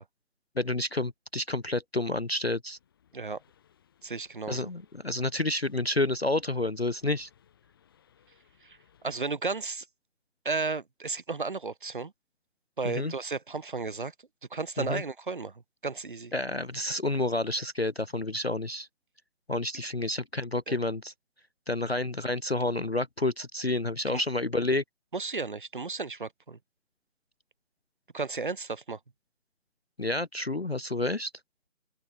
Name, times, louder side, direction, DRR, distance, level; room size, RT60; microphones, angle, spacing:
voice 1, 0.6-2.8 4.5-7.3 12.8-13.1 14.8-15.0 16.3-18.9 19.5-21.1 21.7-24.8 30.0-31.3, left 2 dB, 50° left, 0.5 m, -29 dB
sound 1, 2.8-9.2, left 9 dB, 15° left, 7.9 m, -66 dB
voice 2, 4.0-4.7 8.6-9.9 10.4-12.1 12.8-14.1 14.5-16.3 20.7-20.8 24.1-24.2 25.1-26.6 28.1-29.0, right 4 dB, 35° right, 2.7 m, -34 dB
open air
figure-of-eight pair, 180°, 42 cm